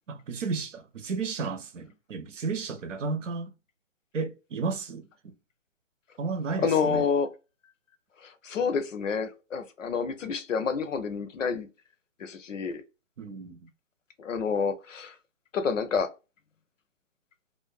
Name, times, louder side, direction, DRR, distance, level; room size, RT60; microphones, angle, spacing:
voice 1, 0.1-3.5 4.1-5.3 6.2-7.1 13.2-13.7, right 4 dB, 85° right, 0.7 m, -33 dB
voice 2, 6.6-7.3 8.2-11.7 12.2-12.8 14.2-15.1 15.5-16.1, left 5 dB, 90° left, 0.7 m, -28 dB
2.5 x 2.2 x 2.3 m
hypercardioid pair, 160°, 37 cm